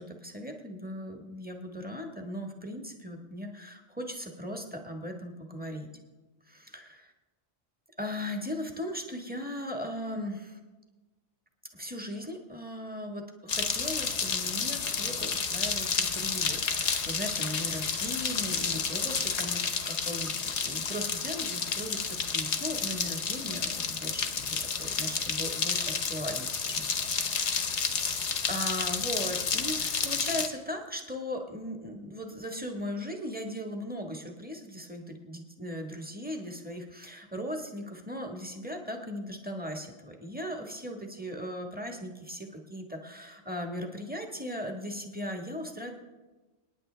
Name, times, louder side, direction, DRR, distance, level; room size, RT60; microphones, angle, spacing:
voice 1, 0.0-5.9 6.4-7.1 8.0-10.6 11.7-28.0 28.5-45.9, equal, 5° right, 2 dB, 1.3 m, -38 dB
sound 1, 13.5-30.5, left 5 dB, 65° left, 1.3 m, -31 dB
28.5 x 9.7 x 3.3 m, 1.2 s
omnidirectional pair, 1.3 m